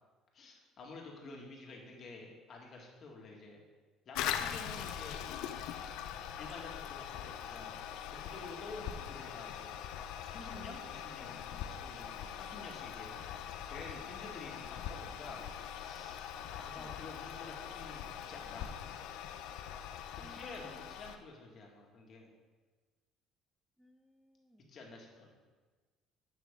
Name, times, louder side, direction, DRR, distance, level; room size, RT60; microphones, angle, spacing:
voice 1, 0.3-3.6 4.1-5.2 6.3-7.8 8.1-9.8 10.3-13.2 13.6-15.4 15.8-18.8 20.2-22.3 24.7-25.3, left 3 dB, 45° left, 0 dB, 1.9 m, -50 dB
voice 2, 1.2-1.9 11.2-11.4 13.1-13.5 16.8-17.0 20.2-21.0 23.8-24.6, equal, 5° right, 4 dB, 0.6 m, -60 dB
Toilet flush, 4.1-21.2, left 9 dB, 80° left, 0.5 m, -42 dB
10.5 x 6.2 x 3.7 m, 1.4 s
cardioid pair, 110°, 0 cm